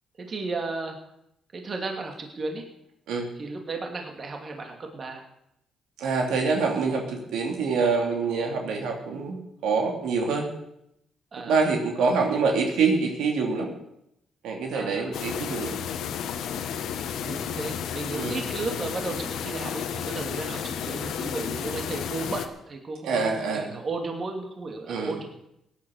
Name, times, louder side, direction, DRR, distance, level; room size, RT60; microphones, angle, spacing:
voice 1, 0.2-1.0 1.5-2.7 3.3-5.3 11.3-11.6 12.0-12.3 14.7-15.1 17.2-25.3, right 3 dB, 40° right, 3 dB, 2.8 m, -34 dB
voice 2, 6.0-9.4 9.6-10.5 11.5-13.7 14.4-15.8 18.1-18.4 23.0-23.7 24.9-25.1, right 4 dB, 85° right, 2 dB, 2.8 m, -25 dB
sound 1, 15.1-22.5, left 8 dB, 80° left, 1.3 m, -32 dB
17.0 x 10.0 x 6.5 m, 0.81 s
cardioid pair, 90°, 0 cm